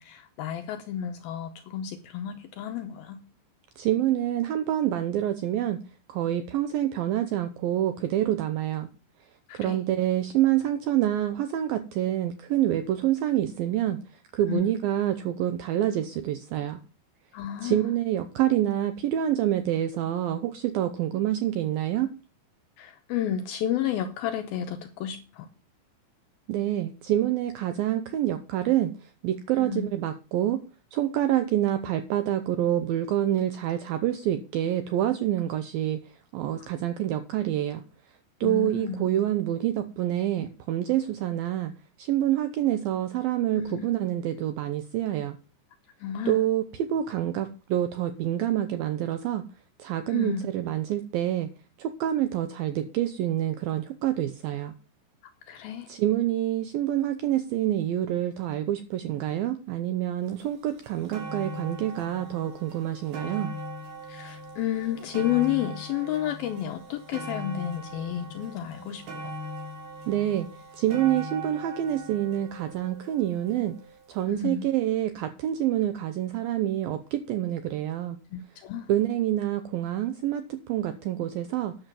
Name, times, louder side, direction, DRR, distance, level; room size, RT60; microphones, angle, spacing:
voice 1, 0.0-3.2 9.5-9.8 14.5-14.7 17.3-17.8 22.8-25.5 29.6-29.9 38.4-39.0 43.6-43.9 46.0-46.4 50.1-50.4 55.5-55.9 64.1-69.0 74.3-74.7 78.3-78.9, left 10 dB, 80° left, 2.2 m, -31 dB
voice 2, 3.8-5.8 6.1-8.9 9.5-14.0 14.3-16.8 17.6-22.1 26.5-30.6 30.9-36.0 36.3-37.8 38.4-41.7 42.0-45.4 46.3-49.4 49.8-51.5 51.8-54.7 55.9-63.5 70.1-70.5 70.8-73.8 74.1-78.2 78.9-81.8, right 12 dB, 80° right, 2.1 m, -27 dB
sound 1, 60.4-60.5 60.8-74.0 74.8-74.9, right 1 dB, 65° right, 4.9 m, -40 dB
9.9 x 7.3 x 5.3 m
omnidirectional pair, 5.0 m